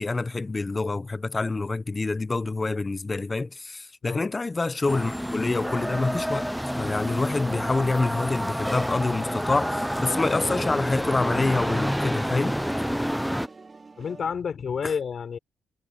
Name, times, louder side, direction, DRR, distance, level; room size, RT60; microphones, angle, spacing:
voice 1, 0.0-6.5 6.8-12.6 14.8-14.9, left 3 dB, 25° left, 0.8 m, -27 dB
sound 1, 4.9-13.5, equal, ahead, 0.3 m, -28 dB
sound 2, 9.2-14.3, right 4 dB, 30° right, 3.3 m, -46 dB
voice 2, 14.0-15.4, left 6 dB, 50° left, 3.8 m, -30 dB
cardioid pair, 90°, 0 cm